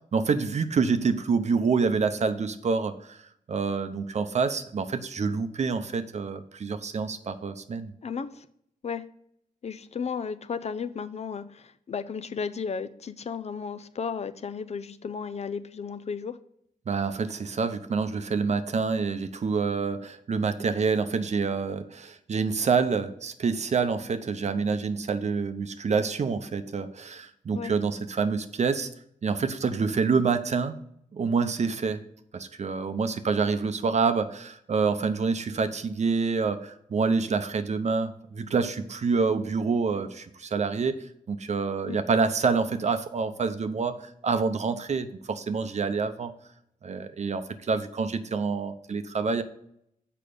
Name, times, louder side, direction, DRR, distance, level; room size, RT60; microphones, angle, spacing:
voice 1, 0.1-3.2 3.5-7.9 16.9-28.9 29.2-30.8 31.1-32.0 32.3-41.0 41.3-46.3 46.8-49.4, right 5 dB, 55° right, 10 dB, 0.7 m, -27 dB
voice 2, 8.0-8.5 8.8-9.0 9.6-16.4 27.5-27.7 41.9-42.0, left 6 dB, 50° left, 12 dB, 0.5 m, -34 dB
6.8 x 5.0 x 5.1 m, 0.71 s
cardioid pair, 90°, 14 cm